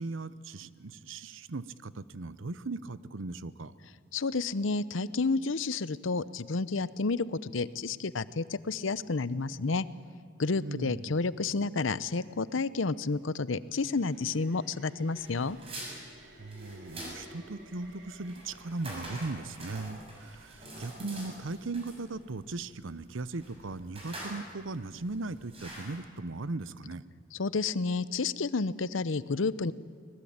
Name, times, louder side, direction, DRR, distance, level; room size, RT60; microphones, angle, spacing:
voice 1, 0.0-3.7 10.6-11.2 16.4-27.0, right 3 dB, 80° right, 16 dB, 0.8 m, -38 dB
voice 2, 4.1-9.9 10.4-15.6 27.3-29.7, left 3 dB, 85° left, 17 dB, 0.8 m, -30 dB
sound 1, 13.8-21.1, right 1 dB, 60° right, 4.6 m, -55 dB
sound 2, 15.1-26.0, right 1 dB, 30° right, 6.6 m, -45 dB
25.0 x 20.0 x 8.8 m, 2.2 s
head